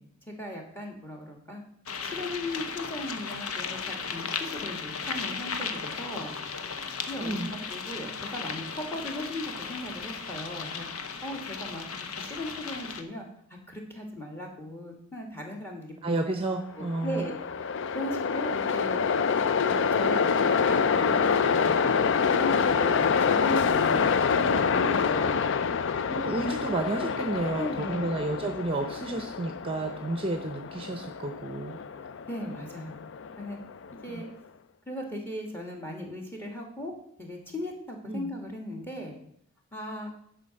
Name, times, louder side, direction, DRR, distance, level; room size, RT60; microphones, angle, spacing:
voice 1, 0.3-1.6 2.0-6.3 7.1-10.9 11.2-11.9 12.2-13.3 13.7-16.2 16.8-17.4 17.9-19.0 19.6-22.0 22.3-25.5 27.6-28.1 32.3-33.0 33.4-33.6 34.0-34.3 34.9-36.9 37.2-39.1 39.7-40.1, left 1 dB, 10° left, 2 dB, 1.9 m, -37 dB
sound 1, 1.9-13.0, left 5 dB, 90° left, 0.9 m, -36 dB
voice 2, 7.2-7.5 16.0-17.3 26.1-31.8 34.1-34.2 38.1-38.3, right 2 dB, 25° right, 6 dB, 0.7 m, -31 dB
Train, 16.8-34.0, left 6 dB, 60° left, 0.4 m, -27 dB
10.5 x 5.0 x 6.5 m, 0.69 s
head